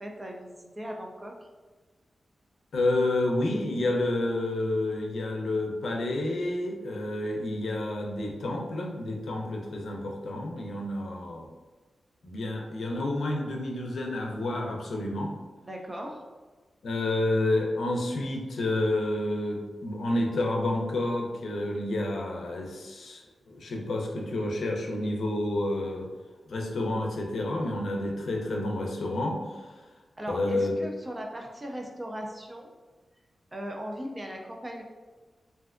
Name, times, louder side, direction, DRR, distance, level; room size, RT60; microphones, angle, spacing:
voice 1, 0.0-1.5 15.6-16.2 30.2-32.7 33.5-34.8, equal, 20° right, 1 dB, 0.3 m, -38 dB
voice 2, 2.7-11.5 12.2-15.3 16.8-26.1 26.5-29.7 30.3-30.7, left 1 dB, 70° left, 0 dB, 0.5 m, -29 dB
3.3 x 2.5 x 2.4 m, 1.3 s
wide cardioid pair, 150°, 0 cm